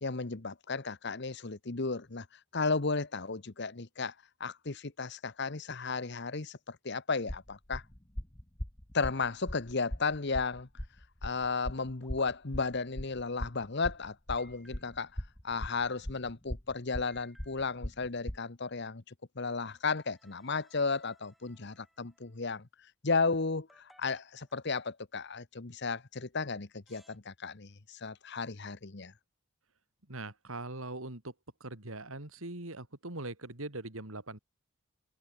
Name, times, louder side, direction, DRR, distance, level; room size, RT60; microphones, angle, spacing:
voice 1, 0.0-2.3 2.5-4.1 4.4-7.8 8.9-10.7 11.2-15.1 15.4-19.0 19.4-22.7 23.0-29.1, left 4 dB, 55° left, 1.1 m, -34 dB
sound 1, 7.3-18.4, left 1 dB, 20° left, 1.4 m, -39 dB
sound 2, 12.0-12.3 14.4-15.2 17.1-17.9 19.7-22.4 23.7-25.0 26.3-26.4 26.9-27.2, equal, ahead, 5.6 m, -64 dB
voice 2, 30.1-31.3 31.6-34.4, right 2 dB, 75° right, 3.4 m, -41 dB
head